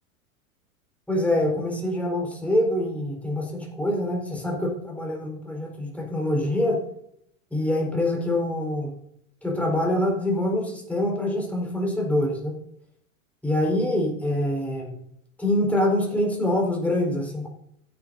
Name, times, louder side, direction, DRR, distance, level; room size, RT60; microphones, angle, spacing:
voice 1, 1.1-6.8 7.5-8.9 9.4-12.5 13.4-15.0 15.4-17.5, left 1 dB, 5° left, 0 dB, 4.3 m, -25 dB
16.0 x 9.6 x 2.7 m, 0.73 s
figure-of-eight pair, 90°, 44 cm